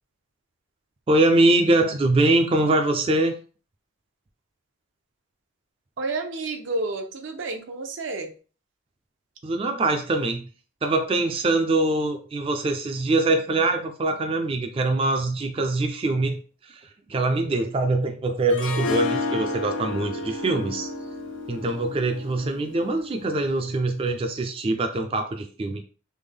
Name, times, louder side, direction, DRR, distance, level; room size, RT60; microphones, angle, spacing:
voice 1, 1.1-3.4 9.4-10.5 10.8-16.4 16.7-16.8 17.1-20.9 21.5-25.8, right 2 dB, 30° right, 6 dB, 0.3 m, -23 dB
voice 2, 6.0-8.3, right 2 dB, 75° right, 5 dB, 0.6 m, -30 dB
Harp, 18.5-23.6, left 2 dB, 80° left, 0.6 m, -31 dB
3.3 x 2.1 x 3.5 m, 0.38 s
head